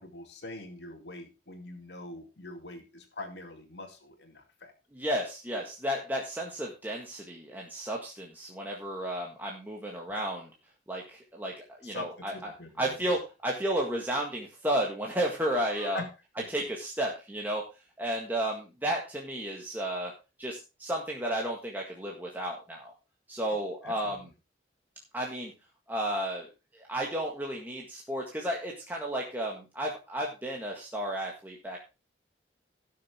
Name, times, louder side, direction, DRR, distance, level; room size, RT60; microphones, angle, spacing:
voice 1, 0.0-4.7 11.8-12.1 12.3-13.0 15.7-16.1 16.4-16.5 23.8-24.1, left 2 dB, 65° left, 4 dB, 2.3 m, -43 dB
voice 2, 4.9-10.5 10.9-12.5 12.8-16.0 16.5-17.6 18.0-20.1 20.4-22.9 23.3-24.2 25.1-25.5 25.9-26.5 26.7-31.8, right 1 dB, 10° right, -1 dB, 1.7 m, -33 dB
16.5 x 6.6 x 3.6 m, 0.28 s
head